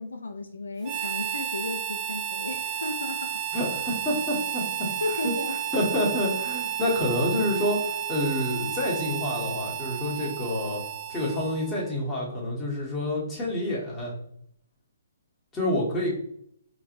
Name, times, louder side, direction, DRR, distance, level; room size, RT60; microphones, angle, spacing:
voice 1, 0.0-3.4 5.0-5.6, left 3 dB, 85° left, 6 dB, 0.5 m, -34 dB
Harmonica, 0.8-11.9, right 10 dB, 25° right, 0.6 m, -32 dB
voice 2, 3.5-4.9 5.2-5.3 5.7-10.8 11.1-14.1 15.5-16.2, left 1 dB, 15° left, -6 dB, 1.6 m, -28 dB
4.5 x 3.1 x 2.6 m, 0.72 s
hypercardioid pair, 135°, 0 cm